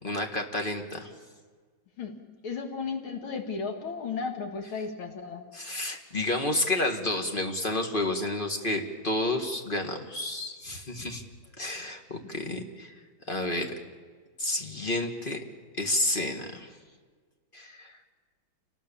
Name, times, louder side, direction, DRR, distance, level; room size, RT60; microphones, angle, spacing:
voice 1, 0.0-1.1 5.5-11.2 11.6-12.9 13.3-13.7 14.4-15.4 15.8-16.7 17.5-17.9, left 1 dB, 25° left, 4 dB, 1.9 m, -30 dB
voice 2, 2.4-5.5 12.4-12.5, left 5 dB, 85° left, 5 dB, 2.9 m, -34 dB
28.5 x 19.5 x 7.1 m, 1.5 s
omnidirectional pair, 2.2 m